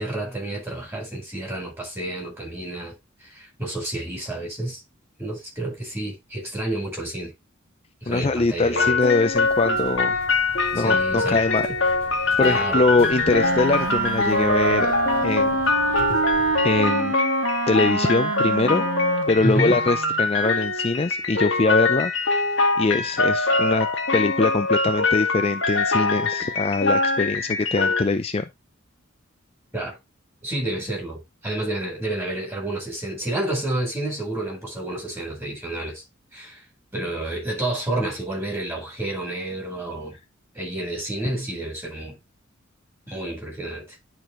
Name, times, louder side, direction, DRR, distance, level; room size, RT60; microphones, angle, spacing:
voice 1, 0.0-2.9 3.2-4.8 5.2-7.3 8.0-9.0 10.7-11.4 12.4-12.8 19.4-19.8 29.7-30.0 30.4-36.0 36.3-36.6 36.9-40.2 40.5-42.2 43.1-44.0, right 1 dB, 10° right, 4.1 m, -29 dB
voice 2, 8.1-10.2 10.7-11.7 12.1-14.9 15.2-15.6 16.6-17.2 17.7-18.9 19.3-22.5 22.8-23.9 24.1-28.5, left 3 dB, 30° left, 0.4 m, -23 dB
sound 1, 8.7-28.0, left 3 dB, 65° left, 1.7 m, -23 dB
sound 2, 9.3-16.8, equal, 45° right, 3.4 m, -41 dB
Wind instrument woodwind instrument, 12.9-20.3, right 5 dB, 75° right, 0.7 m, -28 dB
10.5 x 4.7 x 3.0 m
head